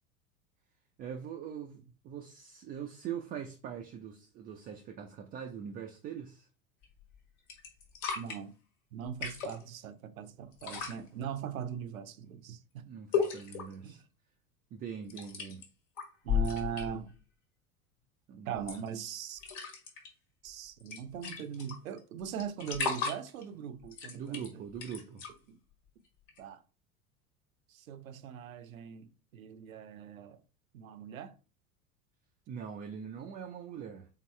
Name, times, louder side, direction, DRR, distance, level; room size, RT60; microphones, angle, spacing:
voice 1, 1.0-6.5 12.9-14.0 14.7-15.6 18.3-18.8 24.1-25.2 32.5-34.1, right 8 dB, 20° right, 0.4 m, -42 dB
sound 1, 6.8-7.1 7.5-8.4 9.1-9.6 10.5-11.0 13.1-13.7 15.1-15.6 16.0-17.1 18.6-19.1 19.4-20.1 20.5-20.6 20.8-22.0 22.4-23.4 23.8-25.3 26.3-26.4, left 6 dB, 60° left, 1.4 m, -35 dB
voice 2, 8.1-8.5 8.9-12.9 13.8-14.0 16.2-17.2 18.5-19.4 20.4-24.7 25.5-25.6 26.4-26.6 27.7-30.4 30.7-31.4, right 8 dB, 70° right, 0.6 m, -40 dB
3.8 x 3.6 x 3.1 m
figure-of-eight pair, 80°, 43 cm